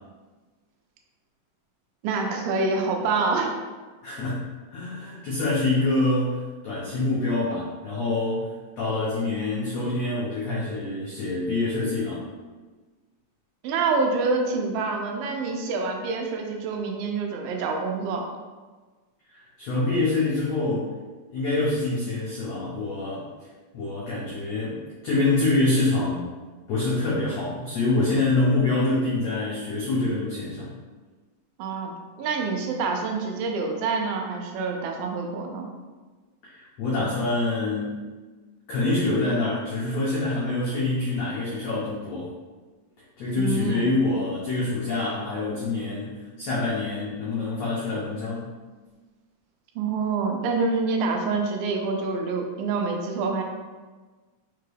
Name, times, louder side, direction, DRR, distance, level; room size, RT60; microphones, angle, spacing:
voice 1, 2.0-3.5 13.6-18.3 31.6-35.7 43.4-43.9 49.8-53.4, right 4 dB, 85° right, 2 dB, 2.4 m, -26 dB
voice 2, 4.0-4.4 4.7-12.2 19.3-20.9 21.3-23.2 23.7-24.8 25.0-26.3 26.7-30.7 36.4-38.0 38.7-42.3 43.2-48.5, left 2 dB, 85° left, -7 dB, 1.4 m, -26 dB
5.7 x 2.3 x 3.3 m, 1.3 s
omnidirectional pair, 4.1 m